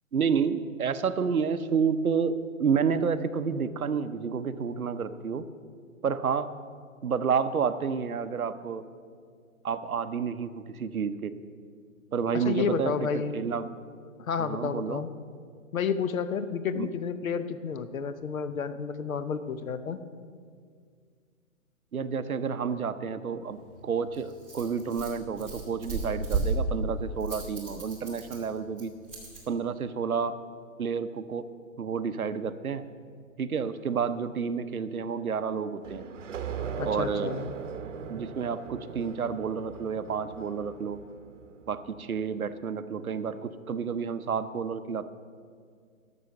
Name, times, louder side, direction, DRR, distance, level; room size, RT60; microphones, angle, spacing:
voice 1, 0.1-2.3 2.6-5.4 6.0-6.5 7.0-8.8 9.6-11.3 12.1-13.7 14.4-15.0 16.8-16.9 21.9-28.9 29.5-30.4 30.8-31.4 31.8-32.9 33.4-36.1 36.8-37.4 38.1-41.0 41.7-45.1, right 6 dB, 90° right, 12 dB, 0.8 m, -30 dB
voice 2, 12.3-13.3 14.2-15.1 15.7-20.0 36.8-37.5, left 6 dB, 75° left, 12 dB, 0.9 m, -31 dB
Rattle, 23.4-29.4, right 3 dB, ahead, 0.4 m, -35 dB
sound 1, 35.8-42.2, right 6 dB, 60° right, 0.9 m, -39 dB
12.0 x 6.3 x 6.9 m, 2.1 s
figure-of-eight pair, 140°, 42 cm